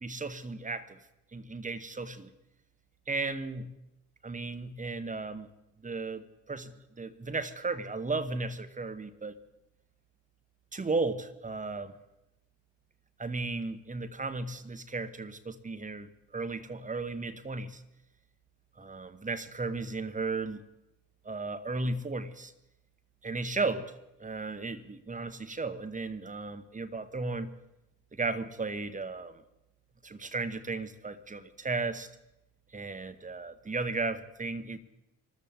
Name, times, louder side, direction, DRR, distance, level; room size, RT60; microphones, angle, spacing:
voice 1, 0.0-1.0 1.3-2.3 3.1-3.7 4.2-5.5 5.8-9.4 10.7-11.9 13.2-17.8 18.8-20.6 21.2-22.5 23.2-23.9 24.2-27.5 28.1-29.4 30.0-32.1 32.7-34.8, right 3 dB, 15° right, 11 dB, 1.2 m, -35 dB
24.5 x 13.5 x 3.8 m, 0.91 s
figure-of-eight pair, 50°, 49 cm